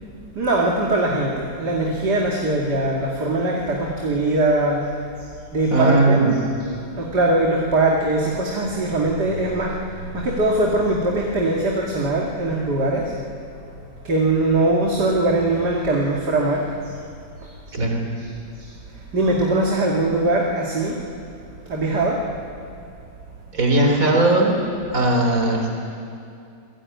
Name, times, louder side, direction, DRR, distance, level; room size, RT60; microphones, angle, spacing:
voice 1, 0.3-4.8 5.5-6.2 7.0-13.1 14.0-16.7 17.4-17.8 18.6-18.7 19.1-21.0 21.7-22.2, right 2 dB, 75° right, -2 dB, 3.0 m, -21 dB
voice 2, 5.7-6.4 17.7-18.0 23.5-24.6 24.9-25.7, right 2 dB, 55° right, 2 dB, 4.2 m, -18 dB
29.5 x 21.0 x 9.6 m, 2.5 s
omnidirectional pair, 1.8 m